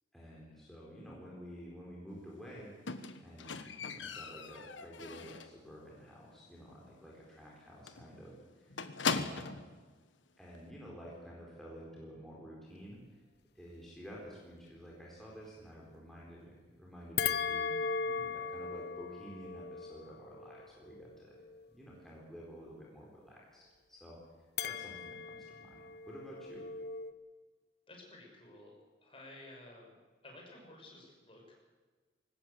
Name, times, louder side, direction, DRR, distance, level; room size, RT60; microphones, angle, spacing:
voice 1, 0.1-9.7 10.4-13.2 13.5-21.4 21.7-24.2 24.6-26.7, equal, ahead, -5 dB, 4.2 m, -51 dB
Squeak, 2.9-5.6 6.0-6.4 6.6-6.7 7.1-7.2 7.5-7.6 7.9-9.7 10.5-10.6, left 5 dB, 80° left, 1.3 m, -39 dB
sound 1, 17.2-21.7 24.6-27.1, left 6 dB, 55° left, 0.9 m, -38 dB
voice 2, 27.9-28.7 29.0-29.9 30.2-31.6, left 2 dB, 30° left, 0 dB, 5.8 m, -53 dB
21.0 x 18.5 x 8.1 m, 1.4 s
head